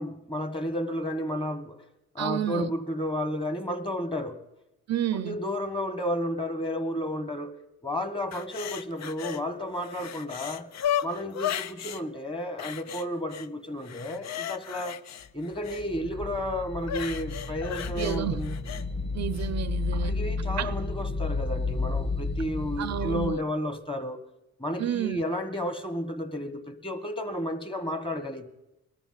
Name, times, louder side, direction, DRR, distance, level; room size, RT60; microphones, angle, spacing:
voice 1, 0.0-1.8 2.1-4.4 5.1-7.5 7.8-10.7 11.0-15.0 15.3-18.6 19.9-24.2 24.6-28.5, equal, 15° left, 1.6 m, -32 dB
voice 2, 2.2-2.7 4.9-5.4 18.0-18.4 19.1-20.1 20.6-20.8 22.8-23.4 24.8-25.2, right 11 dB, 60° right, 0.6 m, -30 dB
sound 1, 8.3-9.4 9.8-12.0 12.6-13.5 13.8-15.8 16.8-18.8 19.3-19.5, left 10 dB, 60° left, 0.6 m, -34 dB
sound 2, 15.5-23.3, left 3 dB, 35° left, 2.5 m, -32 dB
21.5 x 13.5 x 4.1 m
cardioid pair, 90°, 30 cm